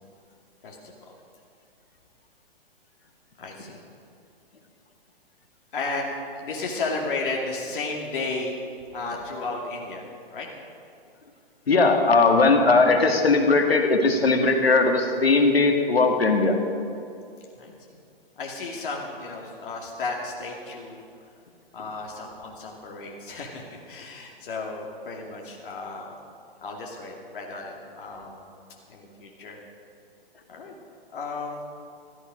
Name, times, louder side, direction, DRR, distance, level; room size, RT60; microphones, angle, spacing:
voice 1, 3.4-3.8 5.7-8.6 8.9-10.0 10.3-10.5 17.6-18.0 18.4-21.0 21.7-26.1 26.6-28.5 28.9-29.6 30.5-30.7 31.1-31.6, left 3 dB, 60° left, -1 dB, 2.6 m, -33 dB
voice 2, 11.7-16.6, left 3 dB, 80° left, 4 dB, 2.2 m, -19 dB
16.0 x 14.5 x 5.2 m, 2.5 s
hypercardioid pair, 125°, 30 cm